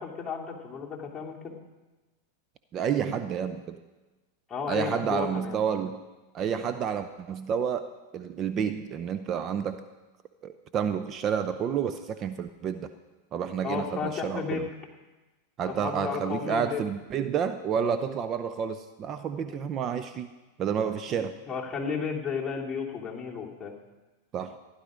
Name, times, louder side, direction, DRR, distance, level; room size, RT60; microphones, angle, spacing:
voice 1, 0.0-1.6 4.5-5.6 13.6-14.6 15.7-16.8 19.4-19.7 21.1-23.7, left 6 dB, 15° left, -3 dB, 2.9 m, -33 dB
voice 2, 2.7-3.8 4.7-6.0 6.3-9.8 10.4-12.9 13.3-14.7 15.6-20.3 20.6-21.4 24.3-24.6, right 7 dB, 35° right, 12 dB, 0.7 m, -30 dB
15.0 x 11.0 x 5.1 m, 1.2 s
hypercardioid pair, 110°, 0 cm